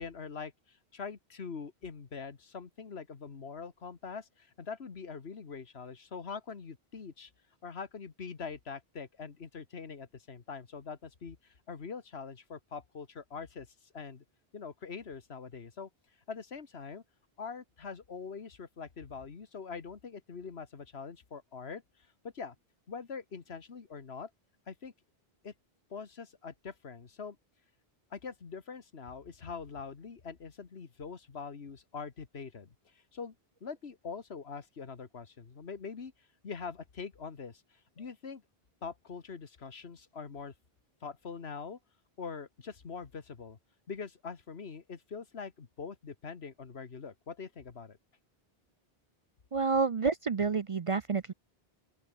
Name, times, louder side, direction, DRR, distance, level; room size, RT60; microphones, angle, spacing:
voice 1, 0.0-7.3 7.6-13.7 13.9-14.2 14.5-15.9 16.3-17.0 17.4-21.8 22.2-22.5 22.9-24.3 24.7-24.9 25.4-25.5 25.9-27.4 28.1-33.3 33.6-36.1 36.4-38.4 38.8-40.5 41.0-41.8 42.2-43.6 43.9-48.0, left 5 dB, 90° left, 1.8 m, -43 dB
voice 2, 49.5-51.3, right 4 dB, 40° right, 0.5 m, -29 dB
open air
omnidirectional pair, 1.0 m